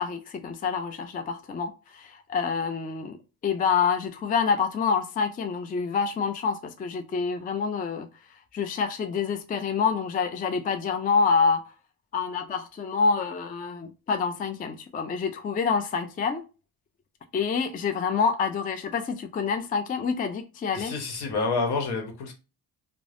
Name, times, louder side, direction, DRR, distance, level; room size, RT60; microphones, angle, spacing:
voice 1, 0.0-3.2 3.4-8.1 8.5-11.6 12.1-16.4 17.3-20.9, left 5 dB, 25° left, 0.4 m, -27 dB
voice 2, 20.7-22.3, left 4 dB, 70° left, 1.0 m, -28 dB
3.1 x 2.0 x 2.5 m
cardioid pair, 80°, 40 cm